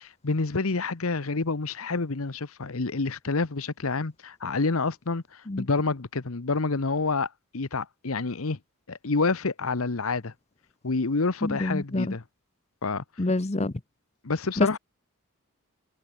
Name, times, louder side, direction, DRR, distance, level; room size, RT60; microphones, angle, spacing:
voice 1, 0.0-8.6 8.9-10.3 10.8-12.2 12.8-13.0 14.2-14.8, left 3 dB, 70° left, 1.0 m, -28 dB
voice 2, 11.4-12.1 13.2-13.7 14.6-14.8, left 2 dB, 30° left, 0.8 m, -27 dB
head